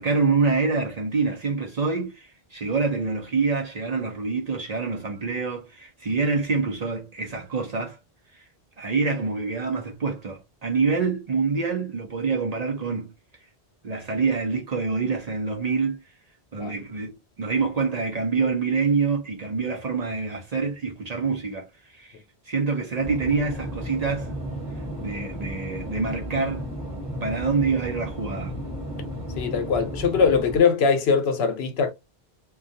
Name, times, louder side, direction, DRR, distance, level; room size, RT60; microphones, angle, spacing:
voice 1, 0.0-8.0 8.3-8.5 8.8-13.1 13.8-16.0 16.5-22.2 22.5-24.3 25.0-26.6 27.2-28.5, right 4 dB, 50° right, 0.6 m, -26 dB
sound 1, 23.0-30.6, equal, 5° right, 1.1 m, -34 dB
voice 2, 29.4-31.9, left 5 dB, 75° left, 0.8 m, -21 dB
2.3 x 2.2 x 2.6 m
omnidirectional pair, 1.1 m